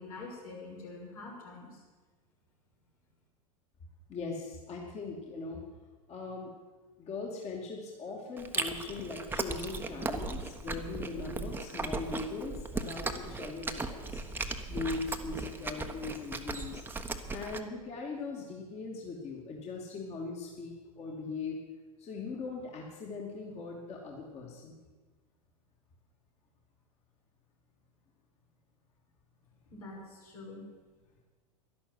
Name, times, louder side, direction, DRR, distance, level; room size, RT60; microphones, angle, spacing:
voice 1, 0.0-1.8 29.7-30.7, left 3 dB, 80° left, -3 dB, 6.2 m, -45 dB
voice 2, 4.1-5.6 6.1-6.5 7.0-14.2 14.7-16.8 17.3-21.6 22.0-24.8, left 4 dB, 35° left, -1 dB, 2.6 m, -40 dB
Chewing mastication, 8.4-17.6, right 3 dB, 10° right, 1.2 m, -37 dB
12.0 x 11.5 x 8.0 m, 1.3 s
hypercardioid pair, 90°, 19 cm